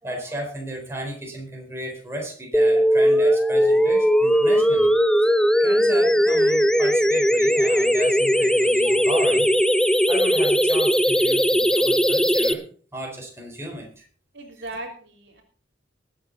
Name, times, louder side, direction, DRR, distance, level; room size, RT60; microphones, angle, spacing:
voice 1, 0.0-4.9 5.6-9.5 10.1-12.6 12.9-14.0, equal, 15° right, 0 dB, 4.2 m, -34 dB
sound 1, 2.5-12.5, equal, 5° left, 0.6 m, -19 dB
voice 2, 14.3-15.4, right 2 dB, 65° right, 2 dB, 3.2 m, -38 dB
20.5 x 8.9 x 4.0 m, 0.43 s
head